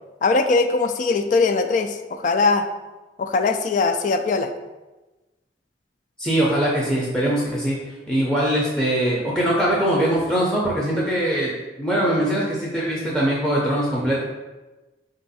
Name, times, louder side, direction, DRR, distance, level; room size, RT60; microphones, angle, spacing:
voice 1, 0.2-2.7 3.2-4.5, left 3 dB, 45° left, 8 dB, 0.3 m, -20 dB
voice 2, 6.2-7.8 8.1-11.5 11.8-14.2, right 1 dB, 5° left, -6 dB, 0.6 m, -22 dB
4.6 x 2.6 x 4.0 m, 1.1 s
head